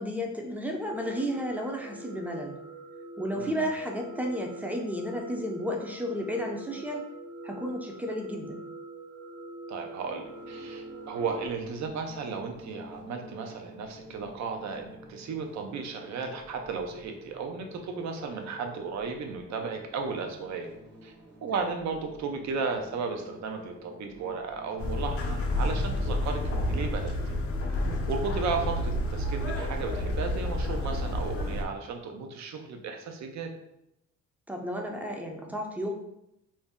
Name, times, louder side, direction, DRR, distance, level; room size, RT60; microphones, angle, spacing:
voice 1, 0.0-2.6 3.2-7.1 7.4-8.6 21.5-21.7 27.8-28.1 34.5-35.9, equal, 5° right, 1 dB, 0.5 m, -33 dB
sound 1, 0.9-11.5, right 2 dB, 90° right, 1.0 m, -44 dB
voice 2, 9.7-20.7 21.0-21.1 21.4-27.3 28.1-33.5, right 4 dB, 65° right, 4 dB, 0.6 m, -34 dB
sound 2, 10.0-26.2, equal, 35° right, 0.8 m, -50 dB
sound 3, 24.8-31.6, left 1 dB, 50° left, 0.6 m, -29 dB
2.6 x 2.1 x 3.5 m, 0.82 s
cardioid pair, 90°, 30 cm